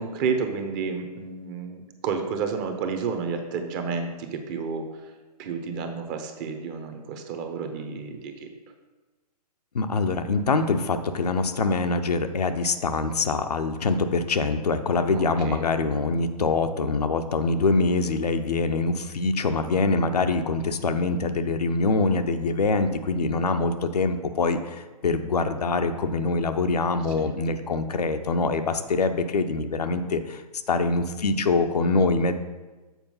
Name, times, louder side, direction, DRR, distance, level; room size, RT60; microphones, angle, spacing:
voice 1, 0.0-4.9 5.4-8.5 15.1-15.6 27.2-27.3, right 5 dB, 30° right, 6 dB, 0.9 m, -31 dB
voice 2, 9.7-30.4 30.7-32.4, left 3 dB, 75° left, 7 dB, 0.7 m, -24 dB
7.3 x 4.5 x 5.5 m, 1.2 s
figure-of-eight pair, 125°, 20 cm